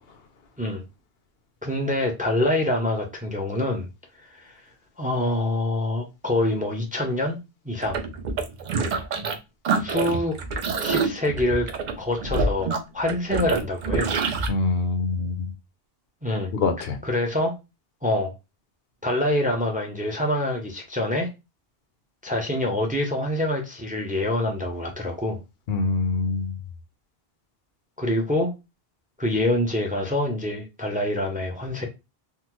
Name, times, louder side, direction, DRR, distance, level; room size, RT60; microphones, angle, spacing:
voice 1, 1.6-3.9 4.3-4.6 5.0-7.4 7.6-8.0 9.8-10.4 10.8-11.7 12.0-14.1 16.2-16.5 17.0-17.6 18.0-18.3 19.0-21.3 22.2-25.4 28.0-28.5 29.2-31.9, left 1 dB, 10° right, 0.5 m, -25 dB
sound 1, 7.8-9.4 9.6-14.5, right 4 dB, 55° right, 0.6 m, -26 dB
voice 2, 14.5-15.5 16.6-17.0 25.7-26.5, left 4 dB, 75° left, 0.9 m, -24 dB
3.6 x 2.0 x 2.9 m
omnidirectional pair, 1.0 m